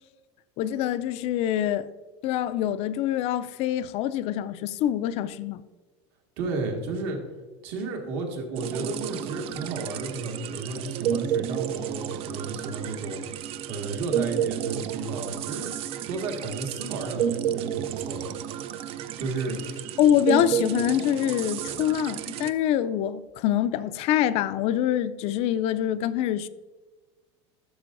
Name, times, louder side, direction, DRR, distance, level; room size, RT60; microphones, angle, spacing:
voice 1, 0.6-1.9 2.2-5.6 20.0-26.5, left 11 dB, 45° left, 0.4 m, -25 dB
voice 2, 6.4-7.2 7.6-15.7 16.1-18.3 19.2-19.6 21.6-21.7, right 3 dB, 70° right, 1.7 m, -33 dB
sound 1, 8.6-22.5, right 10 dB, 40° right, 0.4 m, -31 dB
12.0 x 6.6 x 2.5 m
supercardioid pair, 140°, 14 cm